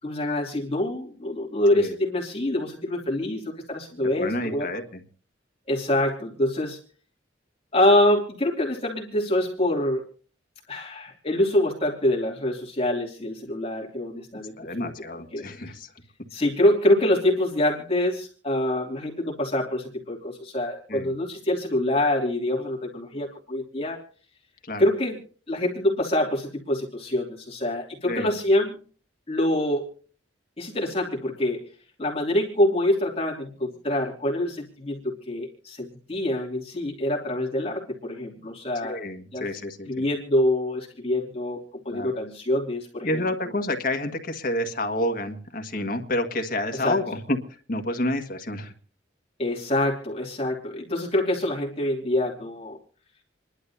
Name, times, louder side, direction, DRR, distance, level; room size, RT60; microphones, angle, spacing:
voice 1, 0.0-4.7 5.7-6.8 7.7-10.0 10.7-14.9 15.3-15.5 16.3-24.0 24.8-25.2 25.5-28.8 29.3-29.9 30.6-31.7 32.0-39.0 39.3-39.5 39.9-43.2 46.7-47.0 49.4-52.8, left 1 dB, 30° left, -3 dB, 2.8 m, -25 dB
voice 2, 4.2-5.0 14.6-15.9 20.9-21.1 24.6-24.8 28.1-28.3 38.8-40.1 41.9-42.1 43.0-47.4 47.7-48.7, left 1 dB, 50° left, 6 dB, 1.7 m, -29 dB
28.0 x 11.5 x 2.8 m, 0.41 s
head